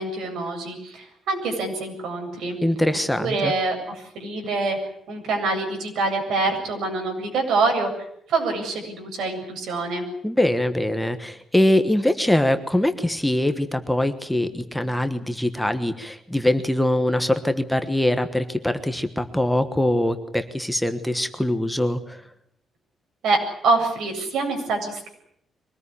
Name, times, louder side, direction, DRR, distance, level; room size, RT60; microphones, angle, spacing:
voice 1, 0.0-2.6 3.2-4.8 5.1-7.9 8.3-10.0 23.2-23.4 23.6-25.1, right 3 dB, 80° right, 3 dB, 7.9 m, -25 dB
voice 2, 2.6-3.5 10.2-22.2, left 1 dB, 5° left, 8 dB, 1.2 m, -23 dB
24.0 x 19.0 x 9.9 m, 0.75 s
cardioid pair, 170°, 0 cm